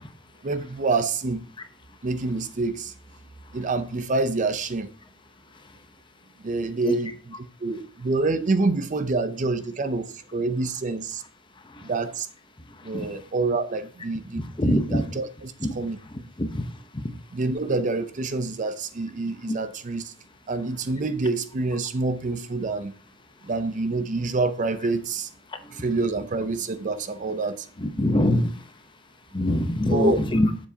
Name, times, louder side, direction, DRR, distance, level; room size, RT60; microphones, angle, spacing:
voice 1, 0.4-1.4 2.0-2.9 3.5-4.9 6.4-7.3 7.6-11.2 11.8-12.3 12.8-16.0 17.3-20.1 20.5-22.9 23.4-25.3 25.7-27.7 29.8-30.2, right 3 dB, 40° right, 0.5 m, -27 dB
voice 2, 14.4-15.0 15.6-15.7 16.4-16.6 27.8-28.5 29.3-30.5, left 1 dB, 25° left, 0.8 m, -23 dB
7.2 x 6.9 x 2.8 m
head